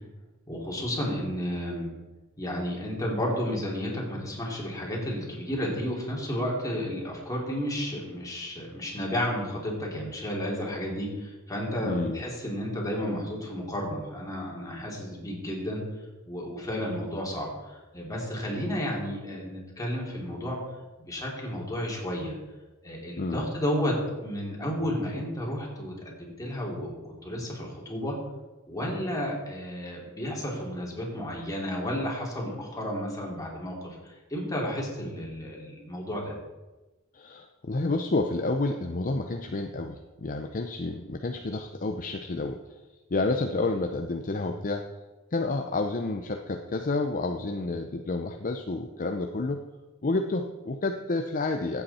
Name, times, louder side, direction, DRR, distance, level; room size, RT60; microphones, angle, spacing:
voice 1, 0.5-1.9 2.4-15.8 16.3-20.6 21.0-22.3 22.8-23.9 24.2-28.1 28.7-36.3, equal, 15° left, -3 dB, 3.0 m, -32 dB
voice 2, 11.8-12.2 23.2-23.5 37.1-42.6 43.1-44.8 45.3-49.6 50.0-51.8, left 2 dB, 40° left, 5 dB, 0.7 m, -29 dB
15.0 x 8.1 x 4.3 m, 1.2 s
head